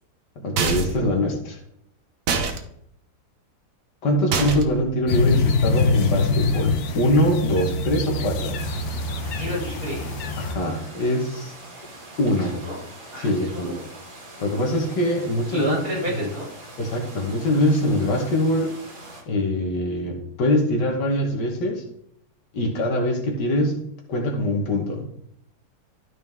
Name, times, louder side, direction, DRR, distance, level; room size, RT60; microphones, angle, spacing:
voice 1, 0.4-1.6 4.0-8.6 10.4-11.5 12.2-12.6 13.2-13.8 14.4-15.8 16.1-16.3 16.8-18.7 19.3-21.8 22.5-23.8 24.1-25.1, left 1 dB, 85° left, 1 dB, 2.0 m, -23 dB
sound 1, 0.6-1.1 2.3-2.6 4.3-4.8, right 5 dB, 85° right, 1.6 m, -24 dB
sound 2, 5.1-10.5, left 3 dB, 65° left, 1.3 m, -24 dB
sound 3, 8.6-19.2, right 2 dB, 30° right, 1.7 m, -43 dB
voice 2, 9.4-10.1 12.4-12.8 13.1-13.8 15.5-16.5, equal, 55° right, -3 dB, 3.5 m, -30 dB
12.5 x 4.8 x 3.6 m, 0.72 s
omnidirectional pair, 1.8 m